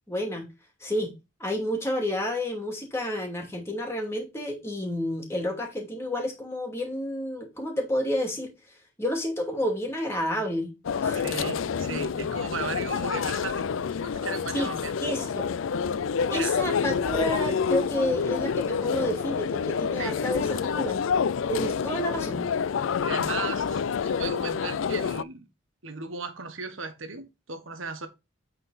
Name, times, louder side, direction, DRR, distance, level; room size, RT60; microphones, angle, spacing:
voice 1, 0.1-0.5 0.8-1.1 1.4-8.5 9.0-10.7 11.0-11.2 14.5-14.7 15.0-15.5 16.3-21.0 21.5-22.5, equal, 15° left, 2.4 m, -30 dB
sound 1, 10.8-25.2, left 6 dB, 80° left, 0.4 m, -28 dB
voice 2, 11.1-13.7 14.0-14.9 16.3-16.5 20.0-20.2 23.0-25.5 25.8-28.1, right 4 dB, 85° right, 1.5 m, -36 dB
8.7 x 4.1 x 4.0 m
head